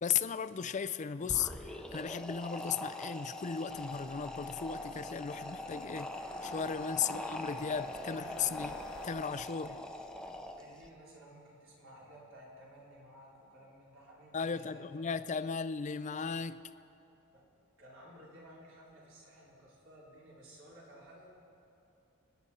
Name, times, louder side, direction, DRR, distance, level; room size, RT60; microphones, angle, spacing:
voice 1, 0.0-6.1 6.4-8.8 9.0-9.8 14.3-16.6, left 7 dB, 35° left, 0.4 m, -36 dB
sound 1, 1.2-10.9, left 1 dB, 5° left, 0.8 m, -42 dB
sound 2, 3.7-9.1, left 3 dB, 60° left, 0.9 m, -52 dB
voice 2, 10.6-15.0 17.3-17.4 17.8-21.3, equal, 65° right, 3.8 m, -55 dB
29.0 x 10.5 x 4.2 m
head